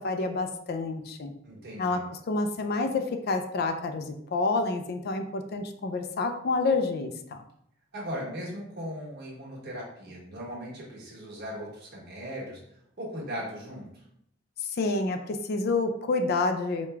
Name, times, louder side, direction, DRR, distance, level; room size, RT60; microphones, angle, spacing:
voice 1, 0.0-1.3 1.8-2.0 2.3-7.4 14.6-16.9, left 3 dB, 50° left, 7 dB, 0.4 m, -28 dB
voice 2, 1.4-2.0 7.9-12.6 13.0-14.0, equal, 50° right, -4 dB, 1.4 m, -38 dB
4.8 x 2.2 x 3.4 m, 0.71 s
head